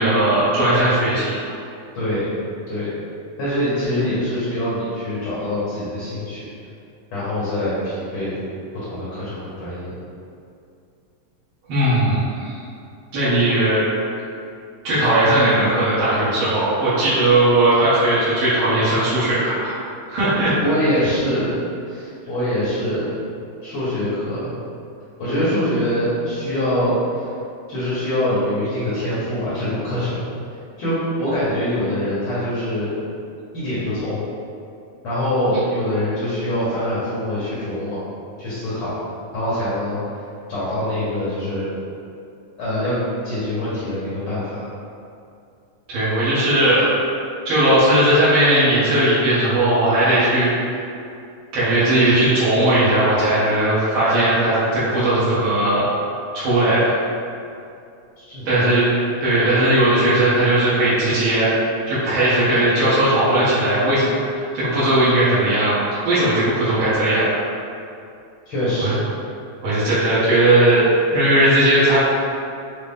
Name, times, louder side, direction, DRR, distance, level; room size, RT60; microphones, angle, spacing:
voice 1, 0.0-1.3 11.7-12.5 13.1-13.8 14.8-19.7 20.1-20.6 45.9-46.9 47.4-50.5 51.5-55.8 56.3-56.9 58.4-58.9 59.2-61.5 61.9-67.4 68.8-68.9 69.6-72.0, right 1 dB, 65° right, -11 dB, 1.3 m, -17 dB
voice 2, 1.9-2.3 2.7-2.9 3.4-6.5 7.1-8.4 8.7-9.9 20.6-21.6 21.9-23.1 23.6-24.5 25.2-27.2 27.7-30.2 30.8-32.9 33.5-34.2 35.0-38.0 38.4-38.9 39.3-40.0 40.5-41.7 42.6-43.0 43.2-44.6 58.2-58.6 68.5-68.9, left 1 dB, 60° left, -10 dB, 1.3 m, -24 dB
5.4 x 2.1 x 3.5 m, 2.5 s
omnidirectional pair, 3.5 m